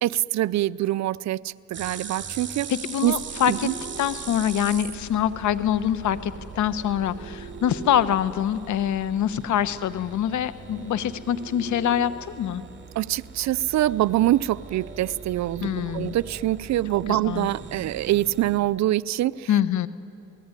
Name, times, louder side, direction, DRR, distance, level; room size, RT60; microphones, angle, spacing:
voice 1, 0.0-2.7 3.0-3.1 3.5-3.7 13.0-19.5, right 14 dB, 65° right, 19 dB, 0.5 m, -24 dB
sound 1, 1.7-18.6, right 6 dB, 40° right, 2.7 m, -40 dB
voice 2, 2.7-3.7 4.0-12.6 15.6-16.2 17.1-17.5 19.5-19.9, left 10 dB, 70° left, 15 dB, 1.0 m, -25 dB
28.0 x 18.5 x 9.7 m, 2.8 s
cardioid pair, 90°, 30 cm